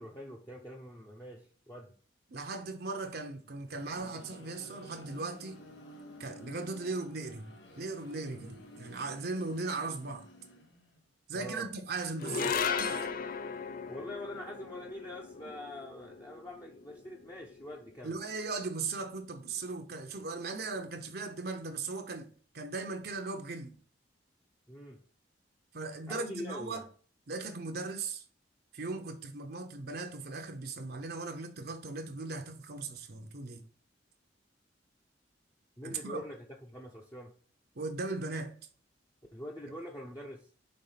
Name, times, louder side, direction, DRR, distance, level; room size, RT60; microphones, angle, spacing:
voice 1, 0.0-1.9 11.3-11.7 13.9-18.2 24.7-25.0 26.1-26.9 35.8-37.3 39.3-40.5, left 1 dB, 15° left, 0.8 m, -44 dB
voice 2, 2.3-5.6 6.2-7.5 7.8-10.3 11.3-13.1 18.0-22.3 22.5-23.8 25.7-26.8 27.3-28.2 28.7-33.6 35.8-36.2 37.8-38.5, right 3 dB, 55° right, 0.8 m, -38 dB
sound 1, 3.4-11.1, left 1 dB, 80° left, 1.4 m, -52 dB
sound 2, 12.2-18.7, left 6 dB, 50° left, 0.4 m, -37 dB
5.3 x 3.7 x 5.7 m
head